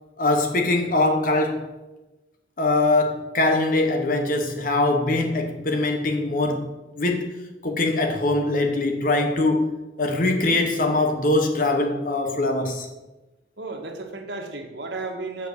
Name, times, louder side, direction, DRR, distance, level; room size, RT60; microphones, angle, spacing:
voice 1, 0.2-1.7 2.6-6.7 7.0-7.3 7.6-9.7 10.0-12.9, left 2 dB, 50° left, 1.0 m, -22 dB
voice 2, 13.6-15.5, right 3 dB, 80° right, 1.6 m, -33 dB
7.4 x 6.8 x 6.5 m
head